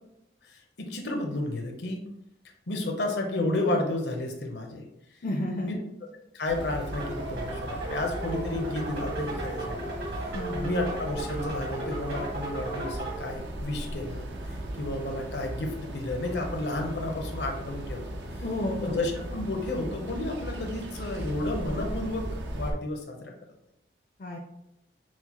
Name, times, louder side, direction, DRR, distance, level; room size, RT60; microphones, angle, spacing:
voice 1, 0.4-2.0 2.7-5.2 5.6-5.7 6.3-18.0 18.8-23.3, left 2 dB, 75° left, 3 dB, 0.8 m, -32 dB
voice 2, 5.2-5.8 10.3-10.7 18.4-19.0 24.2-24.4, left 1 dB, 50° left, 0 dB, 0.4 m, -31 dB
sound 1, 6.5-22.7, right 1 dB, 90° right, 0.7 m, -37 dB
sound 2, 6.9-13.2, right 2 dB, 65° right, 1.3 m, -36 dB
6.1 x 2.2 x 2.9 m, 0.83 s
head